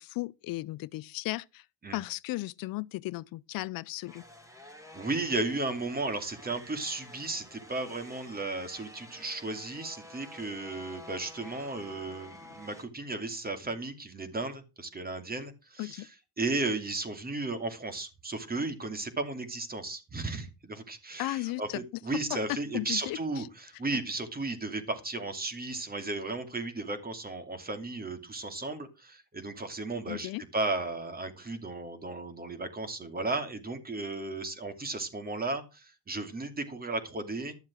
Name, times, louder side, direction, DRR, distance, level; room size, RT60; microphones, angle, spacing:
voice 1, 0.0-1.6 1.9-4.2 15.8-16.1 21.2-21.6 22.7-23.2 30.1-30.4, left 19 dB, 70° left, 0.5 m, -35 dB
sound 1, 4.1-12.9, left 1 dB, 10° right, 3.8 m, -50 dB
voice 2, 4.9-37.6, right 2 dB, 25° right, 2.7 m, -35 dB
12.5 x 7.3 x 6.2 m
cardioid pair, 95°, 36 cm